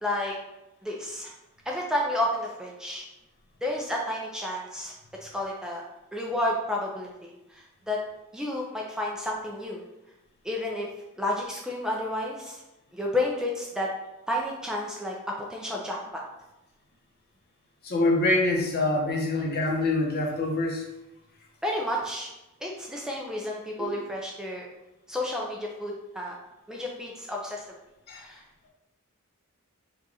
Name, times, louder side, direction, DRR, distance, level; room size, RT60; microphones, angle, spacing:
voice 1, 0.0-0.4 0.8-1.3 1.7-3.1 3.6-4.9 5.2-5.8 6.1-8.0 8.3-9.8 10.4-10.9 11.2-12.6 12.9-13.9 14.3-15.2 15.5-16.2 21.6-22.3 22.6-24.7 25.1-26.3 26.7-27.6 28.1-28.4, left 1 dB, 5° right, -2 dB, 0.5 m, -31 dB
voice 2, 17.8-20.8 23.8-24.0 28.1-28.2, left 2 dB, 45° left, 0 dB, 0.9 m, -25 dB
4.9 x 2.5 x 4.1 m, 0.94 s
head